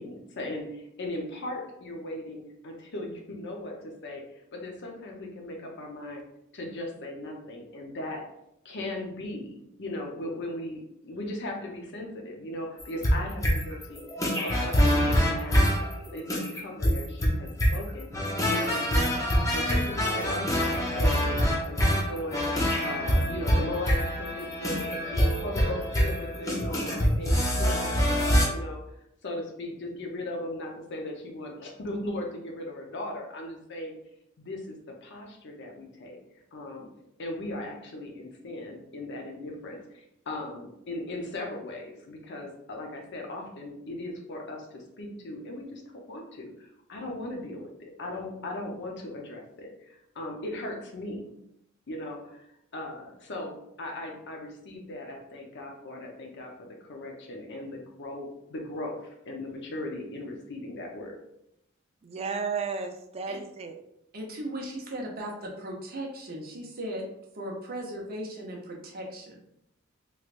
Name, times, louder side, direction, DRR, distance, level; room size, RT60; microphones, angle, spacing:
voice 1, 0.0-4.2 4.5-6.2 6.5-8.3 8.6-14.0 14.4-18.1 18.5-19.3 19.5-28.8 29.2-33.9 34.4-36.2 36.5-36.9 37.2-51.3 51.9-52.4 52.7-61.2, left 1 dB, 60° left, 1 dB, 0.7 m, -38 dB
sound 1, 12.8-28.5, equal, 15° left, 0.6 m, -25 dB
voice 2, 62.0-63.8, right 5 dB, 30° right, 6 dB, 0.3 m, -33 dB
voice 3, 64.1-67.0 67.3-69.4, right 1 dB, 45° right, -1 dB, 0.8 m, -37 dB
3.2 x 3.1 x 2.4 m, 0.80 s
head